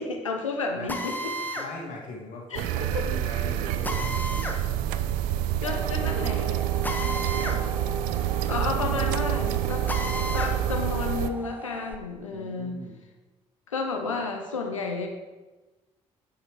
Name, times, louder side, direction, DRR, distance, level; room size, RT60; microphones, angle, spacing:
voice 1, 0.0-1.3 2.5-2.9 5.6-6.6 6.9-7.2 8.5-9.8 10.3-12.8 13.7-15.1, left 4 dB, 80° left, 3 dB, 0.9 m, -31 dB
voice 2, 0.7-4.5 5.1-5.5 6.7-7.7 8.1-9.2 10.2-10.4 12.3-13.0, left 3 dB, 50° left, -1 dB, 1.8 m, -42 dB
Drill, 0.9-1.7 3.8-4.6 6.8-7.6 8.0-8.1 9.9-10.6, left 1 dB, 10° left, 1.3 m, -32 dB
sound 1, 2.5-11.3, right 11 dB, 60° right, 0.4 m, -27 dB
sound 2, 5.4-11.9, right 2 dB, 10° right, 0.9 m, -41 dB
9.9 x 6.6 x 3.6 m, 1.2 s
figure-of-eight pair, 45°, 16 cm